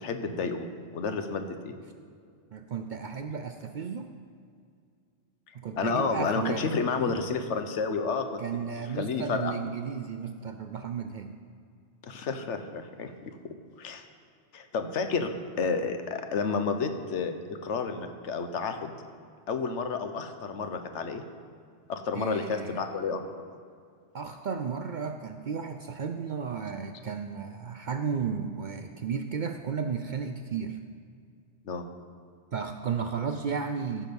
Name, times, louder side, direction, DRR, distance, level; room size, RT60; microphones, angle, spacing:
voice 1, 0.0-1.7 5.8-8.4 9.0-9.5 12.0-13.4 13.8-14.0 14.5-15.3 15.6-18.9 19.5-21.2 21.9-23.2 31.6-31.9, left 5 dB, 80° left, 7 dB, 1.1 m, -30 dB
voice 2, 2.5-4.1 5.5-6.7 8.4-11.4 22.1-22.9 24.1-30.8 32.5-34.1, right 6 dB, 60° right, 7 dB, 0.5 m, -33 dB
14.5 x 6.2 x 5.2 m, 2.2 s
omnidirectional pair, 1.2 m